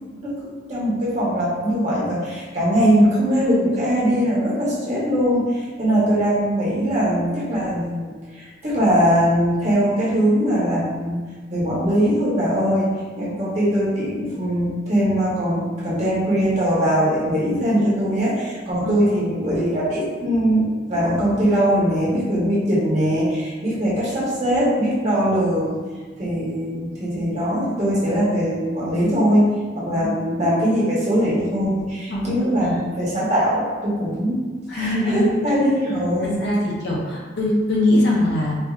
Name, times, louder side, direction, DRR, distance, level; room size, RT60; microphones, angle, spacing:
voice 1, 0.7-11.2 11.5-12.9 13.2-25.8 26.2-29.5 29.8-34.4 34.7-36.4, equal, 35° right, -7 dB, 1.0 m, -21 dB
voice 2, 32.1-32.9 34.7-35.3 36.2-38.6, left 1 dB, 55° left, -3 dB, 0.6 m, -22 dB
4.3 x 2.6 x 2.4 m, 1.4 s
head